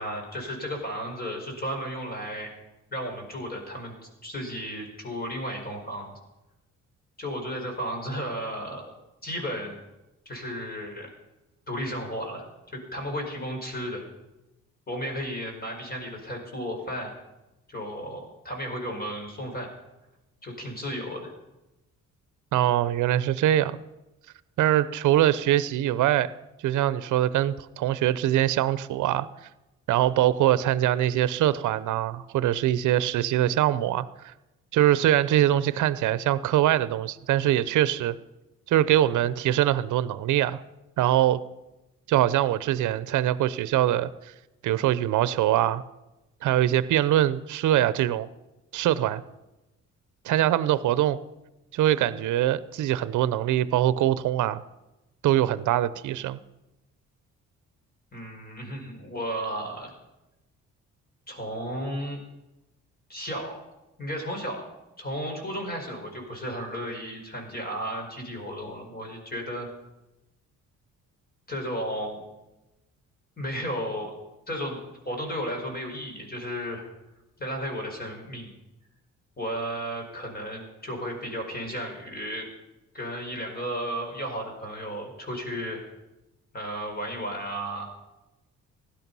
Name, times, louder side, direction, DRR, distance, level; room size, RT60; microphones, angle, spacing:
voice 1, 0.0-2.5 2.9-3.9 4.2-6.1 7.2-8.9 9.2-9.8 10.2-11.1 11.7-12.4 12.7-14.0 14.9-17.1 17.7-19.7 20.4-21.3 58.1-59.9 61.3-62.2 63.1-63.6 64.0-64.6 65.0-69.7 71.5-72.2 73.4-74.1 74.5-74.8 75.0-76.9 77.4-78.5 79.4-82.5 82.9-85.8 86.5-87.9, equal, 30° left, 2 dB, 5.0 m, -33 dB
voice 2, 22.5-23.8 24.6-26.3 26.6-29.3 29.9-34.3 34.7-38.1 38.7-40.6 41.0-41.4 42.1-44.1 44.6-45.8 46.4-48.3 48.7-49.2 50.2-51.2 51.7-54.6 55.2-56.4, right 12 dB, 80° right, 16 dB, 0.7 m, -23 dB
16.5 x 11.5 x 5.5 m, 0.98 s
cardioid pair, 90°, 30 cm